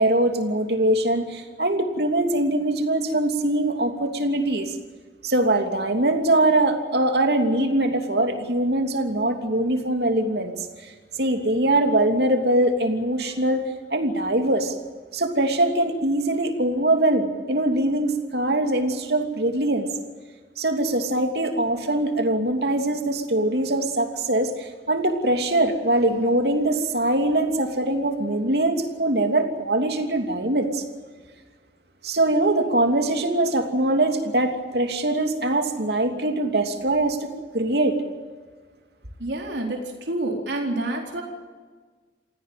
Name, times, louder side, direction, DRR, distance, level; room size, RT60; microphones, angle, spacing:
voice 1, 0.0-4.8 5.2-10.9 11.2-14.7 15.1-19.9 20.6-30.8 32.0-37.3 37.5-38.0, right 1 dB, 65° right, 5 dB, 2.9 m, -22 dB
voice 2, 39.2-41.2, right 2 dB, 85° right, 1 dB, 4.1 m, -28 dB
28.5 x 16.5 x 7.7 m, 1.5 s
head